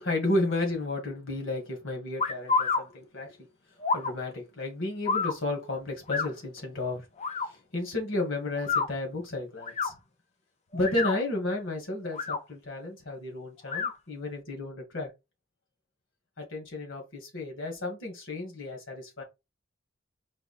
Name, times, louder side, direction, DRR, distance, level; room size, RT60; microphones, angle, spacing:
voice 1, 0.0-3.4 3.9-7.0 7.5-9.9 10.7-15.1 16.4-19.2, left 2 dB, 70° left, 1.8 m, -32 dB
sound 1, 2.2-2.8 3.8-4.1 5.1-5.3 6.1-6.3 7.2-7.5 8.6-8.9 9.6-9.9 10.7-11.2 12.0-12.4 13.7-13.9, left 4 dB, 35° left, 0.5 m, -28 dB
4.6 x 2.3 x 4.2 m
head